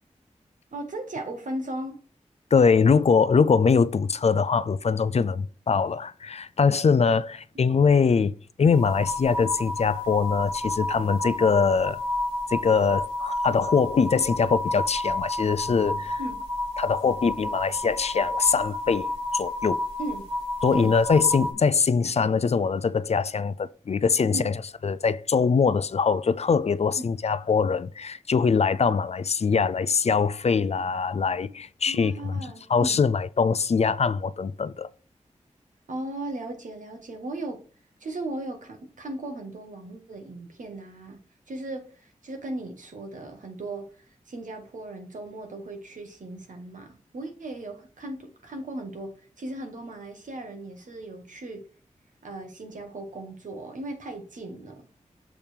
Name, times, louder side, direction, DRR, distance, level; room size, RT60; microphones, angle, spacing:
voice 1, 0.7-2.0 16.2-16.4 20.0-20.2 20.7-20.9 24.3-24.5 27.0-27.1 31.9-33.0 35.9-37.6 38.0-41.2 41.5-43.9 44.3-51.7 52.2-54.9, right 1 dB, 85° right, 1.5 m, -37 dB
voice 2, 2.5-8.3 8.6-12.0 12.5-16.2 16.8-19.8 20.6-24.5 24.8-32.3 32.7-34.9, left 5 dB, 55° left, 0.4 m, -23 dB
sound 1, 8.7-21.5, left 2 dB, 50° right, 2.7 m, -31 dB
7.2 x 3.5 x 4.5 m
wide cardioid pair, 60°, 13 cm